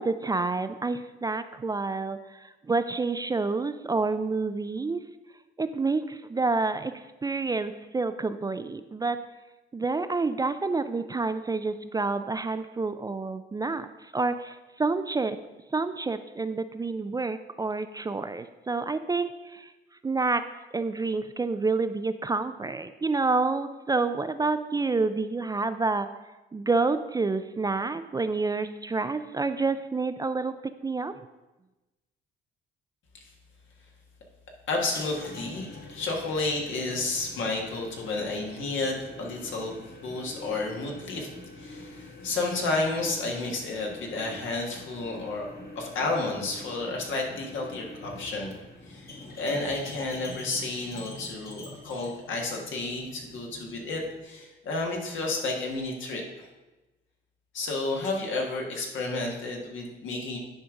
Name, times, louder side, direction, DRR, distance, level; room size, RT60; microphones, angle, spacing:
voice 1, 0.0-5.0 5.6-9.2 9.7-15.4 15.7-19.7 20.0-20.4 20.7-26.1 26.5-30.5 30.8-31.1, right 3 dB, 20° right, 11 dB, 0.3 m, -28 dB
voice 2, 34.7-39.7 40.0-41.3 41.6-45.4 45.7-48.5 48.8-56.5 57.5-60.4, left 3 dB, 75° left, 0 dB, 1.6 m, -31 dB
sound 1, 34.8-54.2, left 2 dB, 50° left, 1.5 m, -45 dB
9.7 x 5.1 x 3.7 m, 1.1 s
cardioid pair, 90°, 20 cm